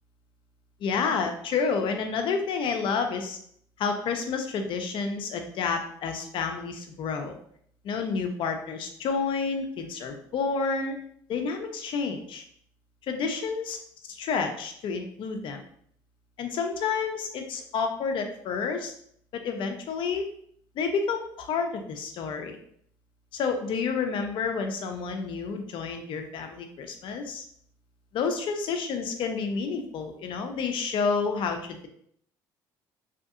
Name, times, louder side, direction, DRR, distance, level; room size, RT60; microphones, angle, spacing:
voice 1, 0.8-3.4 3.8-7.4 7.8-10.9 11.3-12.4 13.1-13.8 14.2-15.6 16.4-18.9 19.3-20.3 20.8-22.6 23.3-27.4 28.1-31.9, left 5 dB, 60° left, 5 dB, 0.5 m, -29 dB
2.7 x 2.6 x 2.4 m, 0.64 s
supercardioid pair, 85°, 10 cm